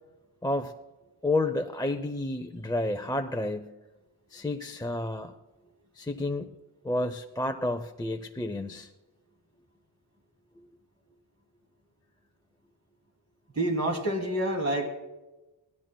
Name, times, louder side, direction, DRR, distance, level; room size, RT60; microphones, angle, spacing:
voice 1, 0.4-0.7 1.2-3.7 4.3-5.3 6.0-6.5 6.8-8.9, left 2 dB, 10° left, 5 dB, 0.5 m, -30 dB
voice 2, 13.6-14.9, right 1 dB, 40° right, 2 dB, 2.5 m, -27 dB
22.5 x 16.5 x 2.2 m, 1.1 s
wide cardioid pair, 125°, 43 cm